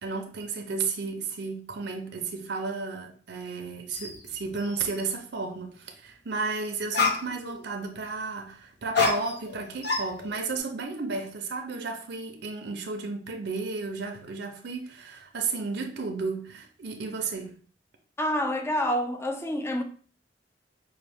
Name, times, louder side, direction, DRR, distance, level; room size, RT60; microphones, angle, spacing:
voice 1, 0.0-17.6, right 4 dB, 65° right, 0.6 m, -33 dB
sound 1, 3.9-4.2 4.6-5.0 6.5-6.6 6.9-7.6 8.9-9.6 9.8-10.6, left 4 dB, 65° left, 0.9 m, -28 dB
voice 2, 18.2-19.8, equal, 15° left, 0.5 m, -27 dB
5.5 x 2.3 x 3.4 m
head